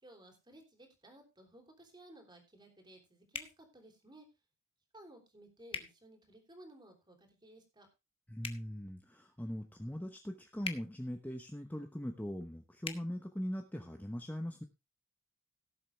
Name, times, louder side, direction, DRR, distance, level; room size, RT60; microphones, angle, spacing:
voice 1, 0.0-4.3 4.9-7.9, right 1 dB, 20° right, 4 dB, 3.3 m, -57 dB
sound 1, 3.3-3.5 5.7-5.9 8.4-8.6 10.6-10.8 12.8-13.0, left 5 dB, 25° left, 1.1 m, -40 dB
voice 2, 8.3-14.6, equal, 10° left, 4 dB, 0.9 m, -41 dB
17.0 x 7.4 x 3.3 m, 0.26 s
head